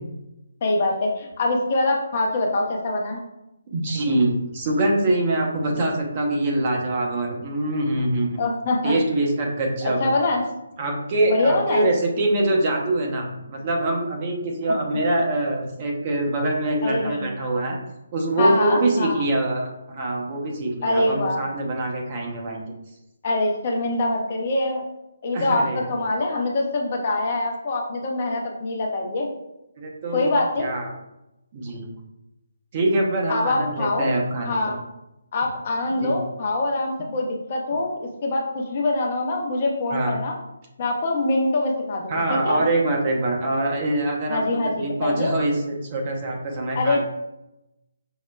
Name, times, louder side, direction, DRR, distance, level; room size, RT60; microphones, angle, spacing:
voice 1, 0.6-3.2 8.4-9.0 9.8-10.4 11.3-11.9 16.8-17.3 18.4-19.1 20.8-21.4 23.2-24.8 25.2-29.3 30.1-30.7 33.3-34.1 34.4-34.8 35.3-40.3 40.8-42.6 44.3-45.3 46.7-47.0, left 2 dB, 40° left, 0 dB, 0.6 m, -24 dB
voice 2, 3.7-8.4 8.8-10.1 10.8-17.8 18.1-22.7 25.3-25.9 29.8-30.3 30.6-30.9 31.5-31.9 32.7-34.8 36.0-36.1 39.9-40.1 42.1-44.4 44.8-47.0, right 1 dB, 35° right, 0 dB, 0.7 m, -24 dB
5.5 x 2.1 x 2.2 m, 0.91 s
figure-of-eight pair, 145°, 0 cm